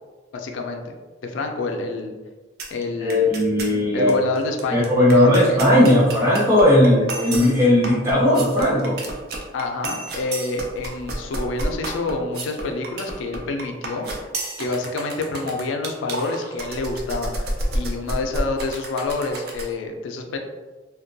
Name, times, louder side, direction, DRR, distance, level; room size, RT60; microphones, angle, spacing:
voice 1, 0.3-0.9 1.2-2.1 2.7-3.3 3.9-5.6 9.5-14.1 14.6-20.4, left 3 dB, 90° left, 4 dB, 0.4 m, -28 dB
sound 1, 2.6-2.8 3.1-3.7 4.1-4.2 4.4-19.7, right 1 dB, 55° right, 0.4 m, -31 dB
voice 2, 3.0-4.2 4.7-9.0, left 1 dB, 15° right, -9 dB, 0.8 m, -17 dB
2.2 x 2.2 x 2.6 m, 1.3 s
head